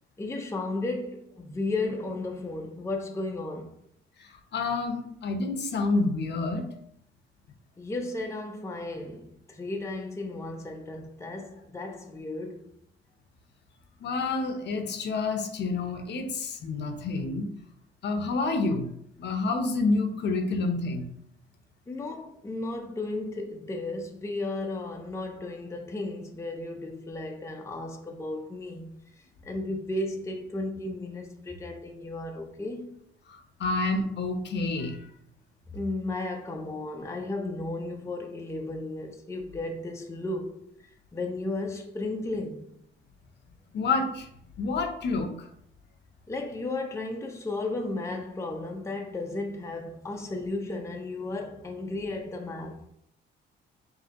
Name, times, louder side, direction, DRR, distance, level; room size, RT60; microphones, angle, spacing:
voice 1, 0.2-3.7 7.8-12.7 21.9-28.9 29.4-33.0 35.7-40.6 41.1-42.7 46.3-52.8, left 2 dB, 15° left, 0.6 m, -34 dB
voice 2, 4.5-6.7 14.0-17.5 18.0-18.8 19.2-21.0 33.6-35.0 43.7-44.3 44.6-45.3, left 3 dB, 60° left, 0.8 m, -28 dB
5.2 x 2.8 x 2.9 m
cardioid pair, 90°, 20 cm